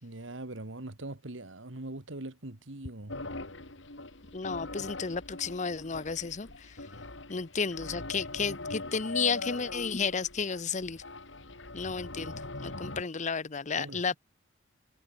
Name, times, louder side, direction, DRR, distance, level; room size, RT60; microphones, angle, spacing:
voice 1, 0.0-3.2 13.8-14.0, right 2 dB, 90° right, 2.0 m, -41 dB
sound 1, 3.1-13.0, left 2 dB, 75° left, 5.0 m, -41 dB
voice 2, 4.3-6.7 7.3-11.0 11.7-12.3 12.6-14.2, left 5 dB, 40° left, 0.8 m, -32 dB
head